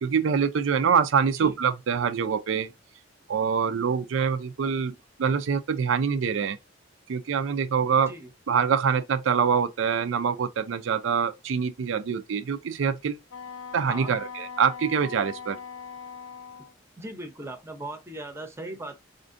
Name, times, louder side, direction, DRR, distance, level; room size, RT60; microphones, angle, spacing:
voice 1, 0.0-2.7 3.3-6.6 7.1-8.1 8.5-13.2 13.7-15.6, right 6 dB, 70° right, 0.4 m, -25 dB
Wind instrument woodwind instrument, 13.3-16.7, left 6 dB, 65° left, 0.4 m, -40 dB
voice 2, 17.0-19.0, right 1 dB, 15° right, 0.6 m, -38 dB
4.2 x 2.6 x 2.4 m
head